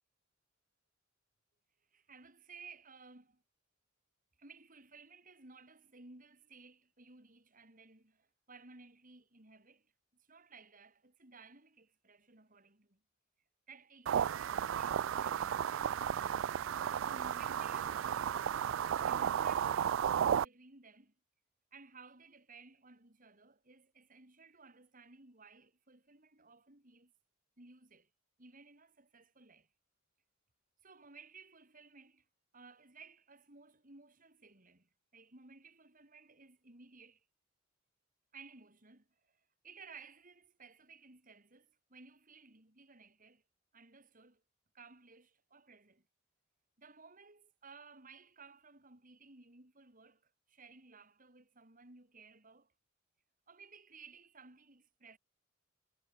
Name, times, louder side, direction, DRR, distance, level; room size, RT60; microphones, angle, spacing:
voice 1, 1.9-3.4 4.4-13.0 13.7-15.8 17.0-18.6 18.9-21.1 21.7-27.1 27.6-28.1 28.4-29.7 30.8-32.3 32.5-37.2 38.3-43.4 43.7-44.4 44.7-46.1 46.8-52.7 53.5-55.2, right 4 dB, 45° right, 4.1 m, -58 dB
sound 1, 14.1-20.5, right 9 dB, 70° right, 0.3 m, -33 dB
head